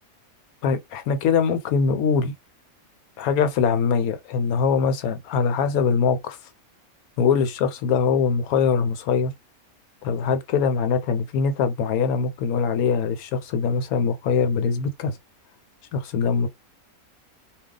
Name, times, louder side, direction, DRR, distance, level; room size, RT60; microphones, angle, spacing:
voice 1, 0.6-2.3 3.2-6.4 7.2-9.3 10.0-15.2 15.9-16.5, left 6 dB, 90° left, 1.1 m, -22 dB
2.3 x 2.3 x 3.7 m
omnidirectional pair, 1.5 m